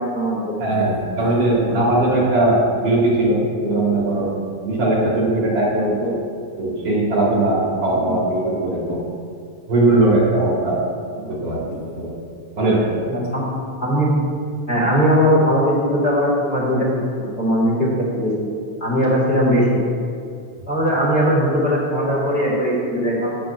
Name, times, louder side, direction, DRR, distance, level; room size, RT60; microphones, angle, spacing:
voice 1, 0.0-0.8 8.0-8.1 11.1-11.3 13.1-13.4 13.8-14.1 14.7-16.9 17.2-18.3 18.8-19.7 20.7-23.4, equal, 25° left, -7 dB, 1.9 m, -19 dB
voice 2, 0.6-4.3 4.6-6.1 6.6-9.0 9.7-10.8 11.2-11.6 12.0-12.1 12.5-12.8, right 2 dB, 55° right, -5 dB, 3.0 m, -19 dB
13.0 x 9.5 x 2.5 m, 2.3 s
omnidirectional pair, 3.3 m